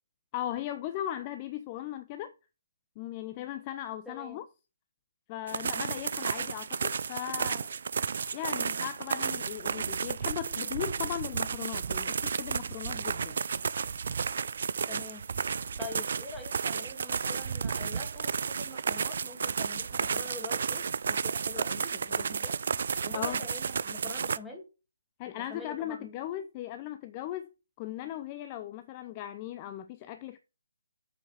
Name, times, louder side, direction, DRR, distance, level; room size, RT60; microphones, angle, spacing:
voice 1, 0.3-2.3 3.0-4.4 5.3-7.7 8.3-13.4 23.1-23.4 25.2-30.4, left 12 dB, 30° left, 0.5 m, -38 dB
voice 2, 4.1-4.4 14.9-15.3 15.8-22.6 23.0-24.7 25.4-26.1, left 3 dB, 5° left, 2.4 m, -45 dB
sound 1, 5.5-24.4, right 6 dB, 55° right, 0.4 m, -32 dB
7.1 x 5.9 x 6.2 m
figure-of-eight pair, 140°, 0 cm